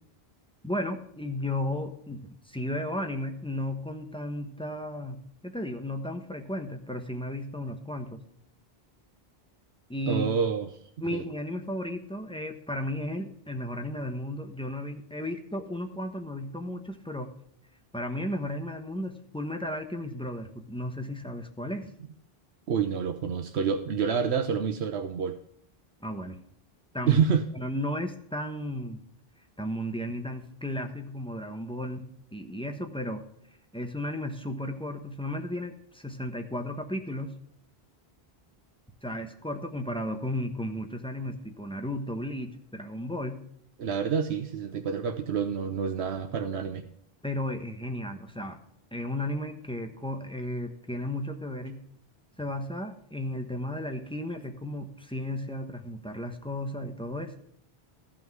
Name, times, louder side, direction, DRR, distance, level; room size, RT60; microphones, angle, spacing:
voice 1, 0.6-8.2 9.9-10.3 11.0-17.3 17.9-21.9 26.0-26.4 26.9-27.2 27.5-29.0 29.6-32.1 32.3-33.2 33.7-37.3 39.0-43.4 47.2-48.6 48.9-51.8 52.4-57.3, left 1 dB, 5° left, 5 dB, 1.1 m, -34 dB
voice 2, 10.1-10.7 11.1-11.2 22.7-25.4 27.1-27.5 43.8-46.8, right 6 dB, 85° right, 6 dB, 1.1 m, -28 dB
14.0 x 5.9 x 4.7 m, 0.70 s
omnidirectional pair, 1.1 m